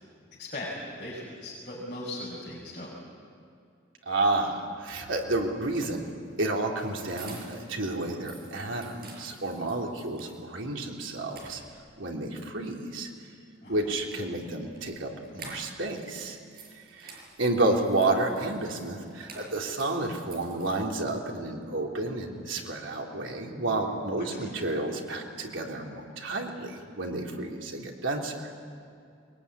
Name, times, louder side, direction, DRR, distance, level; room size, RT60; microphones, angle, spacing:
voice 1, 0.4-2.9 13.6-13.8 24.2-24.6, left 1 dB, 40° left, -5 dB, 5.8 m, -39 dB
voice 2, 4.0-6.1 6.4-11.6 12.0-13.1 13.7-16.4 16.8-28.5, right 2 dB, 85° right, 0 dB, 3.4 m, -30 dB
sound 1, 5.7-7.7 8.1-10.4 10.8-10.9 11.2-12.0 13.7-15.9 16.2-21.2, right 4 dB, 50° right, 6.6 m, -50 dB
22.5 x 22.0 x 9.8 m, 2.4 s
head